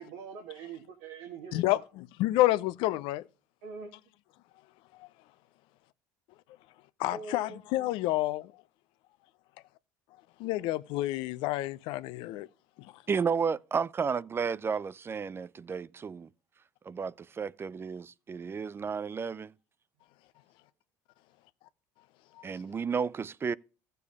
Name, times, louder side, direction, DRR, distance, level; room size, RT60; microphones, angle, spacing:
voice 1, 0.0-1.8 3.6-3.9 7.1-7.6, right 5 dB, 80° right, 1.9 m, -43 dB
voice 2, 1.5-3.2 5.0-5.1 7.0-8.5 10.4-12.5 12.8-12.9 22.4-22.5, left 16 dB, 70° left, 0.6 m, -29 dB
voice 3, 13.1-16.3 16.9-19.5 22.4-23.5, right 6 dB, 25° right, 0.4 m, -32 dB
15.0 x 6.9 x 3.6 m
supercardioid pair, 85°, 9 cm